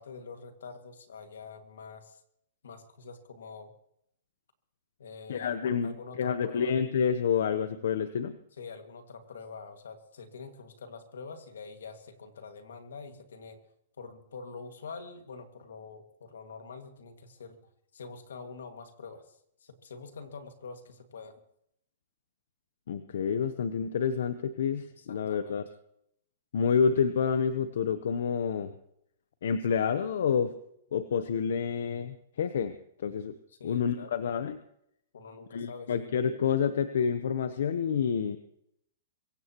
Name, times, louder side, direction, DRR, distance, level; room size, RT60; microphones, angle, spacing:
voice 1, 0.0-2.2 2.6-3.7 5.0-6.7 8.6-13.6 14.0-17.6 17.9-19.2 19.6-21.3 25.0-25.6 33.5-34.1 35.1-36.1, left 4 dB, 90° left, 7 dB, 2.1 m, -45 dB
voice 2, 5.3-8.4 22.9-25.6 26.5-28.7 29.4-30.5 30.9-33.3 33.6-34.6 35.5-38.4, left 7 dB, 75° left, 11 dB, 0.8 m, -28 dB
24.0 x 16.0 x 3.0 m, 0.75 s
hypercardioid pair, 150°, 0 cm